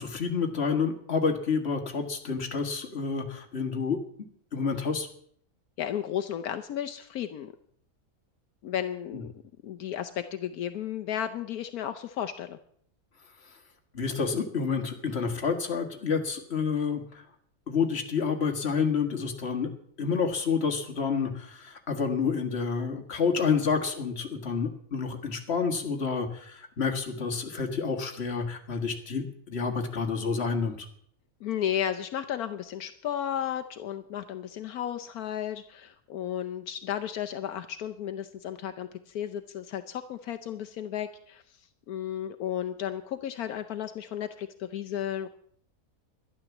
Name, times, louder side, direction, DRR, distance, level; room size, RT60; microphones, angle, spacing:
voice 1, 0.0-4.0 4.5-5.1 9.1-9.2 13.9-17.2 17.7-19.7 20.0-30.9, left 5 dB, 45° left, 5 dB, 1.9 m, -29 dB
voice 2, 5.8-7.5 8.6-9.3 9.6-12.6 31.4-41.6 41.9-45.3, left 10 dB, 80° left, 8 dB, 1.2 m, -33 dB
12.0 x 11.5 x 7.1 m, 0.64 s
omnidirectional pair, 1.6 m